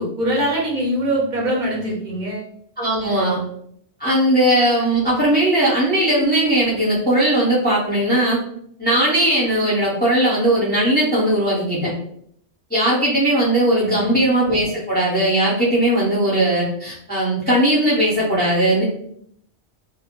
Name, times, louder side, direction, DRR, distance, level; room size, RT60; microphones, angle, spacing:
voice 1, 0.0-2.5 3.0-3.3 13.8-14.3, right 1 dB, 50° right, -3 dB, 0.7 m, -23 dB
voice 2, 2.8-3.4 4.0-8.4 8.8-11.9 12.7-18.8, right 1 dB, 10° left, -7 dB, 0.6 m, -18 dB
2.1 x 2.1 x 2.9 m, 0.67 s
omnidirectional pair, 1.2 m